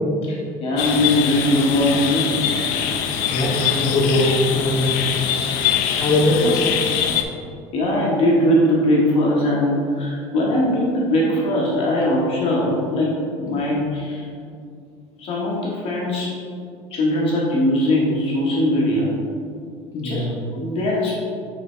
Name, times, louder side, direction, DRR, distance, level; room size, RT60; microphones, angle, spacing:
voice 1, 0.2-2.4 3.7-3.8 7.7-13.1 13.4-14.2 15.2-16.4 16.9-19.1 19.9-21.2, left 1 dB, 55° left, -4 dB, 1.4 m, -20 dB
sound 1, 0.8-7.2, left 8 dB, 80° left, 0.6 m, -23 dB
voice 2, 3.3-5.0 5.9-6.7 13.5-13.6 19.9-20.4, left 1 dB, 30° left, -4 dB, 1.5 m, -21 dB
7.8 x 4.2 x 3.4 m, 2.3 s
cardioid pair, 115°, 12 cm